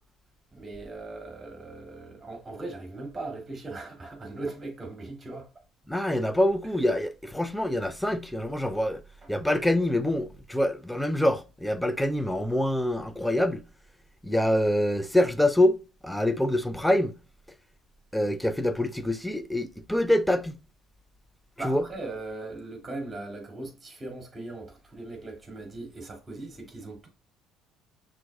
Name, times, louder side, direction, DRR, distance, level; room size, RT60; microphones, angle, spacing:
voice 1, 0.5-5.5 21.6-27.1, right 2 dB, 25° right, 2.7 m, -39 dB
voice 2, 5.9-9.0 9.3-13.6 14.2-15.8 16.0-17.1 18.1-20.6 21.6-21.8, left 1 dB, 5° left, 0.6 m, -25 dB
6.0 x 3.6 x 2.4 m
hypercardioid pair, 60°, 0 cm